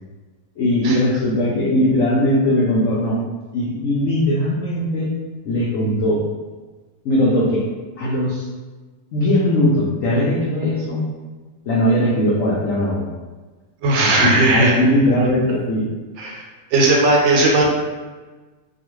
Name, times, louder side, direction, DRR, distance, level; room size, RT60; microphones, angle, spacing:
voice 1, 0.6-3.2 3.5-5.1 5.4-6.2 7.0-7.6 8.0-8.4 9.1-11.0 11.7-13.0 14.0-15.9, left 1 dB, 90° left, -6 dB, 0.7 m, -19 dB
voice 2, 13.8-14.7 16.2-16.4 16.7-17.7, right 2 dB, 80° right, -1 dB, 1.3 m, -16 dB
2.9 x 2.3 x 3.0 m, 1.3 s
omnidirectional pair, 2.1 m